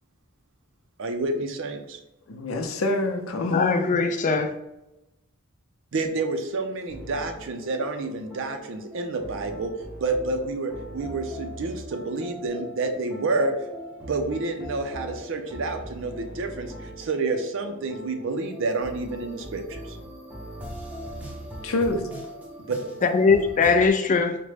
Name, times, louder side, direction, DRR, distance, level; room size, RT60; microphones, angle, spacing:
voice 1, 1.0-2.0 5.9-9.7 10.0-13.5 14.1-20.0 22.7-22.8, right 3 dB, 65° right, 0.5 m, -29 dB
voice 2, 2.3-3.9 21.6-22.0, left 2 dB, 85° left, 0.6 m, -26 dB
voice 3, 3.5-4.5 23.0-24.4, left 4 dB, 40° left, 0.4 m, -21 dB
sound 1, 6.9-23.9, right 1 dB, 5° right, 0.7 m, -40 dB
5.0 x 2.1 x 3.2 m
head